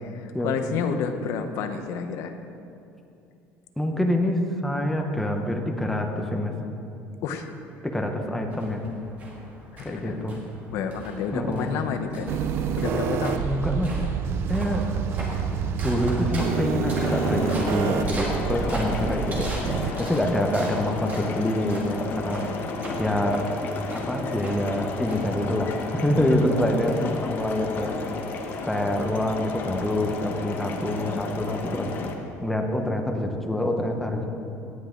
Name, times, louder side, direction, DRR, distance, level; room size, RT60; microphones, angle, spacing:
voice 1, 0.1-2.3 7.2-7.5 9.7-10.4 10.7-12.4 12.8-13.4 26.1-26.4, left 6 dB, 65° left, 6 dB, 1.0 m, -30 dB
voice 2, 3.8-6.5 7.8-8.8 9.8-10.4 11.3-11.7 13.4-14.0 14.5-14.8 15.8-19.5 20.0-22.4 23.0-23.5 23.9-28.0 28.7-31.9 32.4-34.3, left 1 dB, 5° left, 3 dB, 1.0 m, -26 dB
sound 1, 8.5-26.2, right 1 dB, 30° right, 2.5 m, -40 dB
sound 2, 12.3-19.9, right 7 dB, 50° right, 0.6 m, -28 dB
sound 3, 16.9-32.1, left 4 dB, 40° left, 1.1 m, -33 dB
17.5 x 10.0 x 3.9 m, 2.6 s
cardioid pair, 170°, 5 cm